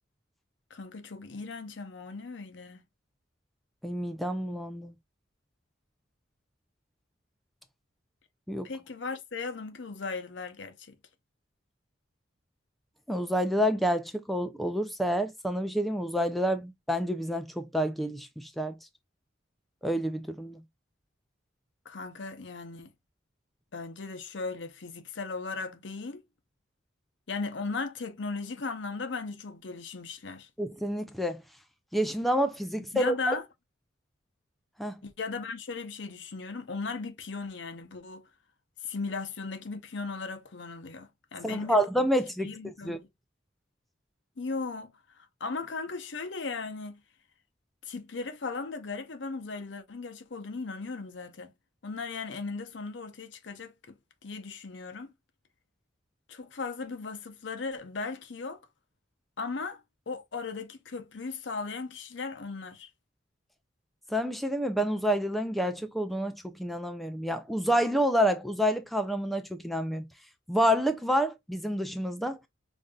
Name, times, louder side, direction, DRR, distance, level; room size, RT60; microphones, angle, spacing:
voice 1, 0.7-2.8 8.6-11.0 21.8-22.9 23.7-26.2 27.3-30.5 32.9-33.4 35.0-38.3 38.8-41.8 42.4-43.1 44.4-47.0 47.8-51.5 51.8-53.9 54.2-55.1 56.3-58.6 59.4-62.9, left 4 dB, 65° left, 0.7 m, -37 dB
voice 2, 3.8-4.9 8.5-8.7 13.1-18.7 19.8-20.6 30.6-31.4 31.9-33.3 34.8-34.9 41.4-42.5 42.8-43.0 64.1-70.0 70.5-72.4, equal, ahead, 0.3 m, -28 dB
5.1 x 2.6 x 2.2 m
head